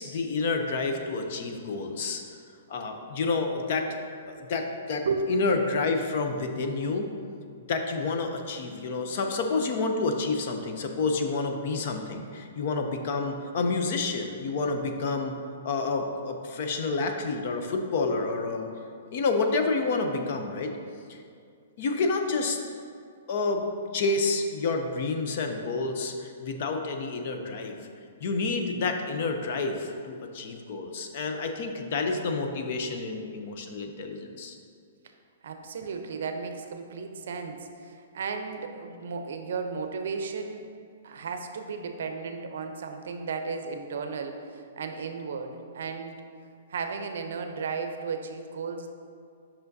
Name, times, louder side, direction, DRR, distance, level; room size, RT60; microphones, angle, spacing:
voice 1, 0.0-2.2 2.7-4.0 4.4-7.1 7.7-15.4 15.6-18.7 19.1-20.7 21.1-21.2 21.8-22.6 23.3-23.7 23.9-27.8 28.2-34.5, left 3 dB, 35° left, 5 dB, 0.5 m, -29 dB
voice 2, 35.4-40.7 41.0-46.2 46.7-48.9, right 5 dB, 60° right, 6 dB, 0.6 m, -34 dB
8.1 x 5.6 x 2.6 m, 2.3 s
hypercardioid pair, 180°, 0 cm